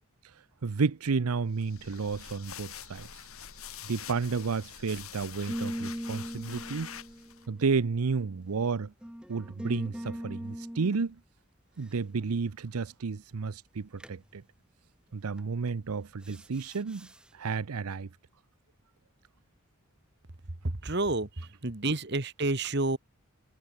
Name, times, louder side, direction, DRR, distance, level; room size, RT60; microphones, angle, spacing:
voice 1, 0.2-3.3 3.9-6.9 7.5-8.9 9.3-11.2 11.8-14.4 15.1-18.1, right 4 dB, 90° right, 0.6 m, -32 dB
sound 1, 1.5-7.4, left 8 dB, 80° left, 5.5 m, -45 dB
sound 2, 5.5-8.3 9.0-11.1 14.0-14.2 15.4-15.7 16.2-17.2, equal, 5° right, 0.9 m, -40 dB
voice 2, 20.8-23.0, right 2 dB, 50° right, 1.6 m, -29 dB
head